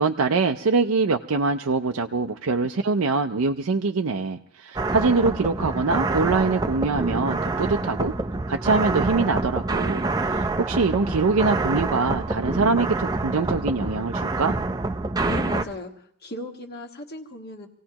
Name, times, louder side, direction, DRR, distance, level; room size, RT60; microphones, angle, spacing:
voice 1, 0.0-8.1 8.5-14.6, right 4 dB, 80° right, 4 dB, 0.6 m, -24 dB
sound 1, 4.8-15.6, right 2 dB, 15° right, 0.5 m, -26 dB
voice 2, 15.2-15.9 16.2-17.7, left 1 dB, 45° left, 4 dB, 1.5 m, -36 dB
26.0 x 17.5 x 2.9 m, 0.65 s
head